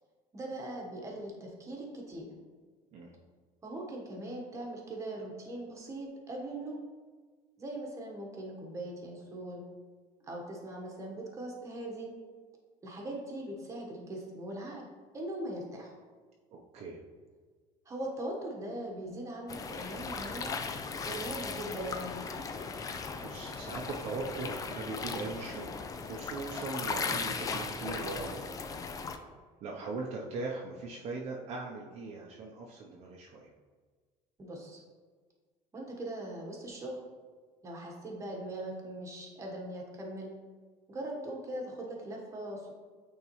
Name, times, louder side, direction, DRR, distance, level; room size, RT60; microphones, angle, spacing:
voice 1, 0.3-2.3 3.6-6.8 7.6-9.6 10.3-12.1 12.8-14.8 15.1-15.9 17.9-20.6 21.0-22.3 34.4-34.8 35.7-37.0 37.6-40.3 40.9-42.7, right 1 dB, 20° right, -1 dB, 1.2 m, -40 dB
voice 2, 16.5-17.0 23.2-28.5 29.6-33.5, right 3 dB, 45° right, -2 dB, 0.7 m, -40 dB
sound 1, 19.5-29.2, left 5 dB, 25° left, 0.4 m, -37 dB
8.7 x 3.7 x 3.1 m, 1.5 s
cardioid pair, 145°, 15 cm